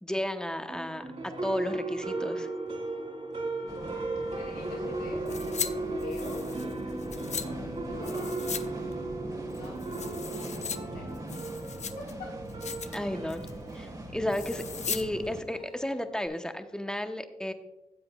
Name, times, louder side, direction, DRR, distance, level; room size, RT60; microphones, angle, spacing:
voice 1, 0.0-2.5 12.9-13.5 13.7-17.5, left 1 dB, 5° left, 7 dB, 0.9 m, -33 dB
sound 1, 0.7-16.3, right 2 dB, 50° right, 2.7 m, -37 dB
voice 2, 3.5-6.7 7.0-8.8 9.5-11.0 11.3-11.5 12.0-12.3, left 4 dB, 90° left, -1 dB, 1.1 m, -46 dB
sound 2, 3.7-15.4, right 1 dB, 25° right, 1.6 m, -42 dB
sound 3, 5.3-5.7 6.0-7.5 8.0-8.7 8.9-9.0 9.5-10.8 11.1-12.1 12.5-13.0 13.3-13.6 14.3-15.0 15.3-15.4, left 6 dB, 55° left, 0.7 m, -37 dB
15.5 x 7.7 x 2.3 m, 1.1 s
supercardioid pair, 50°, 14 cm